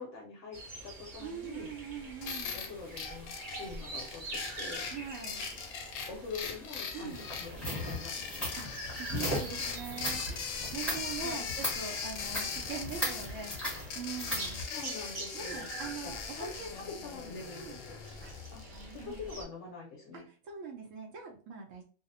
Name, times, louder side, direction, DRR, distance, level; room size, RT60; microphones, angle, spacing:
voice 1, 0.0-1.7 2.5-4.9 6.1-8.5 11.2-11.5 14.7-15.7 16.0-18.0 18.5-18.6 19.1-20.3, left 4 dB, 65° left, -2 dB, 0.9 m, -45 dB
sound 1, 0.5-19.4, right 2 dB, 45° right, 0.8 m, -46 dB
voice 2, 1.2-2.6 4.9-5.4 6.9-7.3 8.6-14.6 15.3-16.7 17.5-17.8 18.2-18.3 18.7-19.2 20.1-21.8, right 6 dB, 70° right, 1 dB, 0.9 m, -43 dB
sound 2, 2.2-19.2, left 6 dB, 90° left, 1.0 m, -41 dB
sound 3, 7.1-14.6, left 1 dB, ahead, 1.0 m, -38 dB
2.7 x 2.0 x 2.4 m, 0.41 s
omnidirectional pair, 1.5 m